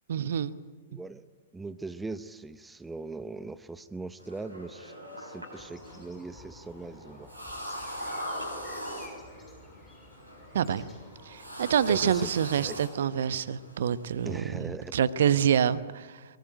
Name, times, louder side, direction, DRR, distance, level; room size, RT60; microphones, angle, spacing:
voice 1, 0.1-0.5 10.5-10.9 11.2-16.2, right 8 dB, 55° right, 15 dB, 1.0 m, -27 dB
voice 2, 0.9-1.2 1.5-7.3 11.9-12.3 12.6-12.8 14.2-14.9, right 3 dB, 10° right, 14 dB, 0.8 m, -40 dB
sound 1, 4.2-14.4, equal, 85° right, 7.7 m, -42 dB
sound 2, 5.6-12.9, left 2 dB, 15° left, 6.0 m, -54 dB
23.5 x 23.0 x 9.2 m, 1.3 s
figure-of-eight pair, 105°, 0 cm